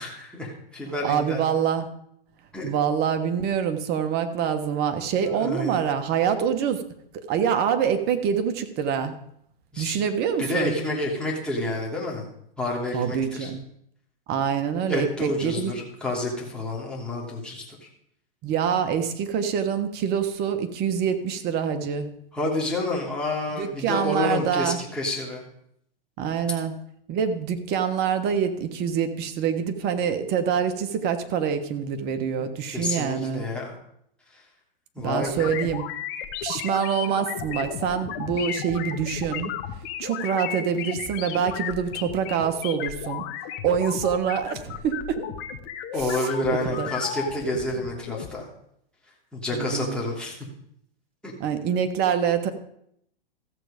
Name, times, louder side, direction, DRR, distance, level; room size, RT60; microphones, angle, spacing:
voice 1, 0.0-1.4 2.5-2.7 5.2-5.8 9.7-10.0 10.4-12.3 12.6-13.5 14.9-17.9 22.3-25.4 32.4-32.5 32.7-33.7 34.3-34.4 34.9-35.5 45.9-48.5 49.3-50.4 51.2-51.3, left 1 dB, 5° left, -4 dB, 2.8 m, -29 dB
voice 2, 1.0-1.9 2.6-6.8 7.3-9.1 9.8-10.8 12.9-13.6 14.3-15.7 18.4-22.1 23.5-24.8 26.2-26.7 27.1-33.4 35.0-35.8 36.4-39.5 40.0-43.3 43.6-45.2 46.0-46.3 46.6-46.9 49.5-50.0 51.4-52.5, right 7 dB, 35° right, 8 dB, 1.3 m, -25 dB
sound 1, 35.2-48.3, left 9 dB, 35° left, 1.3 m, -34 dB
14.0 x 7.9 x 5.1 m, 0.72 s
hypercardioid pair, 130°, 29 cm